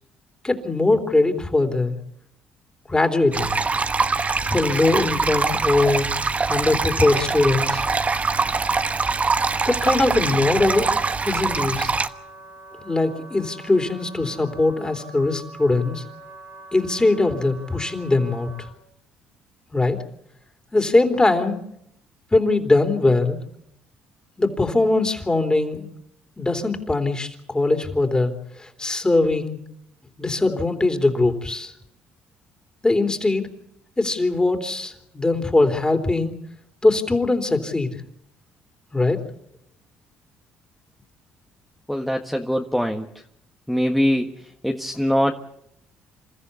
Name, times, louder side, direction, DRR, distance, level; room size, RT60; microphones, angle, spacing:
voice 1, 0.4-2.0 2.9-3.5 4.5-6.1 6.5-7.8 9.7-10.9 11.2-11.9 12.8-16.0 16.7-18.7 19.7-20.0 20.7-21.6 22.3-23.4 24.4-25.9 26.4-29.6 30.2-31.7 32.8-33.5 34.0-36.3 36.8-38.0 38.9-39.2, left 2 dB, 20° left, 6 dB, 3.7 m, -21 dB
sound 1, 3.3-12.1, right 4 dB, 30° right, 1.2 m, -23 dB
Wind instrument woodwind instrument, 7.1-18.7, right 2 dB, 85° right, 7.4 m, -44 dB
voice 2, 41.9-43.1 43.7-44.3 44.6-45.3, equal, ahead, 2 dB, 1.7 m, -22 dB
28.0 x 14.0 x 8.4 m, 0.77 s
hypercardioid pair, 60°, 5 cm